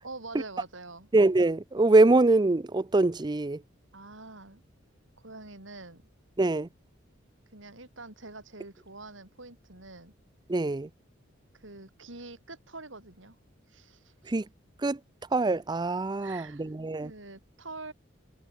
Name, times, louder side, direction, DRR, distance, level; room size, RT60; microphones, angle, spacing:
voice 1, 0.0-1.1 3.9-4.6 5.2-6.0 7.5-10.1 11.5-13.4 13.7-14.3 16.2-16.7 17.0-17.9, right 3 dB, 75° right, 6.4 m, -45 dB
voice 2, 1.1-3.6 6.4-6.7 10.5-10.9 14.3-14.4 14.8-15.0 15.3-17.1, right 2 dB, 20° right, 0.5 m, -23 dB
head